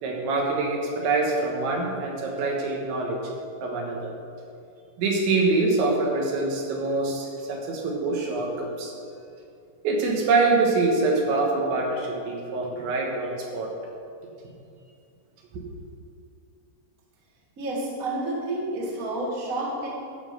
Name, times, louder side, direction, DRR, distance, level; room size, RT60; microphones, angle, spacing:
voice 1, 0.0-3.2 3.6-4.1 5.0-8.9 9.8-13.7, right 3 dB, 85° right, 0 dB, 3.8 m, -25 dB
voice 2, 17.6-19.9, right 2 dB, 65° right, -4 dB, 0.8 m, -29 dB
11.5 x 5.8 x 6.5 m, 2.5 s
omnidirectional pair, 5.2 m